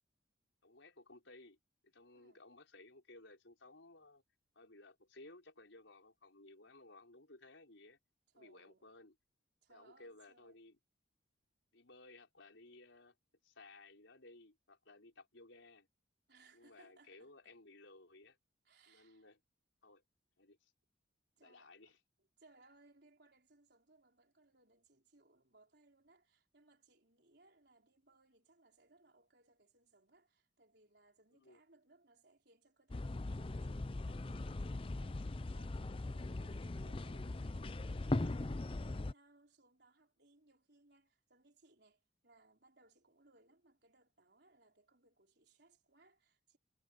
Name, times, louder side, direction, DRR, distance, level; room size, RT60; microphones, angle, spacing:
voice 1, 0.6-1.6 1.8-4.2 4.5-8.0 8.3-9.1 9.7-10.8 11.7-13.2 13.4-15.9 16.5-18.4 18.9-19.4 19.8-20.0 20.4-20.7 21.4-22.0 31.4-31.6, left 2 dB, 80° left, 4.7 m, -59 dB
voice 2, 2.1-2.5 8.3-8.9 9.6-10.6 16.3-17.6 18.6-19.3 21.4-21.9 22.2-46.6, right 2 dB, 55° right, 4.8 m, -68 dB
sound 1, 32.9-39.1, left 2 dB, 30° left, 0.5 m, -40 dB
head